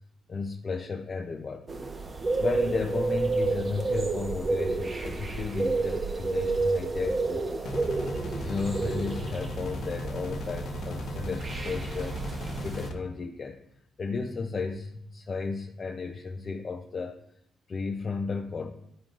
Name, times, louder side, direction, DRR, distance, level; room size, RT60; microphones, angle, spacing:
voice 1, 0.3-1.7 2.4-7.9 8.4-12.2 12.6-13.6 14.0-17.2 17.7-18.7, left 4 dB, 40° left, 2 dB, 0.6 m, -34 dB
sound 1, 1.7-12.9, right 3 dB, 35° right, 0.8 m, -30 dB
sound 2, 7.6-12.9, equal, 75° left, 1.0 m, -36 dB
10.5 x 3.7 x 2.5 m, 0.75 s
cardioid pair, 90°, 0 cm